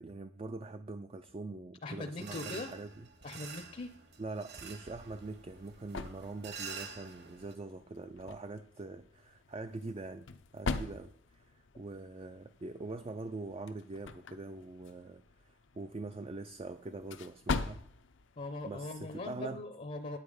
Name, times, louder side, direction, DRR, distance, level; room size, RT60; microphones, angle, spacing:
voice 1, 0.0-3.1 4.2-10.3 10.5-17.8 18.6-19.6, right 3 dB, 30° right, 0.4 m, -43 dB
voice 2, 1.8-2.7 3.2-3.9 18.4-20.2, left 2 dB, 40° left, 0.7 m, -41 dB
sound 1, 2.2-7.5, right 5 dB, 60° right, 1.6 m, -48 dB
sound 2, 5.0-19.5, left 3 dB, 75° left, 0.7 m, -44 dB
9.2 x 9.1 x 4.9 m
head